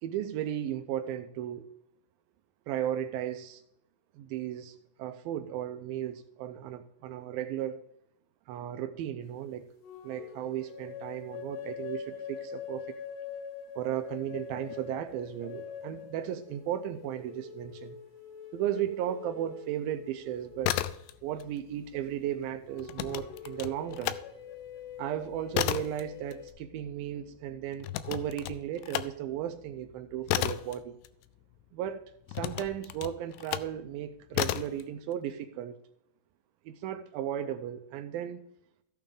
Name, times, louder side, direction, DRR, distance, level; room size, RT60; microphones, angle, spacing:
voice 1, 0.0-1.6 2.7-3.6 4.1-7.8 8.5-9.7 10.0-13.0 13.8-18.0 18.5-20.8 21.2-24.2 25.0-31.0 31.7-35.8 36.7-38.4, right 11 dB, 85° right, 8 dB, 2.1 m, -35 dB
sound 1, 9.8-21.2 22.6-26.5, left 7 dB, 70° left, 1.6 m, -44 dB
sound 2, 20.5-21.5 21.7-24.2 24.6-31.7 32.3-33.8 34.3-34.8, left 14 dB, 85° left, 2.7 m, -34 dB
14.5 x 8.9 x 3.7 m, 0.75 s
omnidirectional pair, 4.9 m